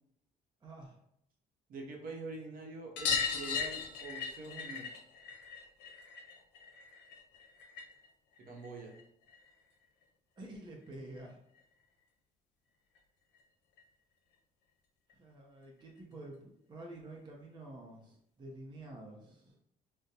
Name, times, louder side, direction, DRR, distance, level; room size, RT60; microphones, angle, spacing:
voice 1, 0.6-1.0 10.4-11.4 15.2-19.6, right 2 dB, 25° right, -1 dB, 0.6 m, -49 dB
voice 2, 1.7-4.9 8.4-9.0, right 3 dB, 55° right, 0 dB, 0.8 m, -45 dB
sound 1, 3.0-8.1 8.4-9.5 10.9-11.0 11.2-11.3 11.6-11.7 13.0-13.1 13.3-13.4 13.8-13.9 15.1-15.2 16.0-16.1, left 6 dB, 90° left, 0.6 m, -38 dB
3.7 x 2.1 x 2.8 m, 0.72 s
cardioid pair, 110°, 17 cm